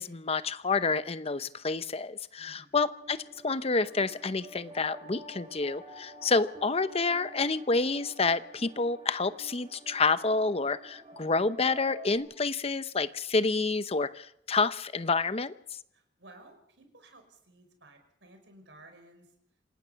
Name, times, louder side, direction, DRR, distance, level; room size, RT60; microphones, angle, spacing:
voice 1, 0.0-3.2 3.4-15.5, left 3 dB, 35° left, 13 dB, 0.8 m, -28 dB
voice 2, 2.4-2.8 15.9-19.3, right 2 dB, 80° right, 6 dB, 5.5 m, -55 dB
sound 1, 3.0-12.2, right 1 dB, 30° right, 3.8 m, -50 dB
27.0 x 18.0 x 5.9 m, 0.74 s
head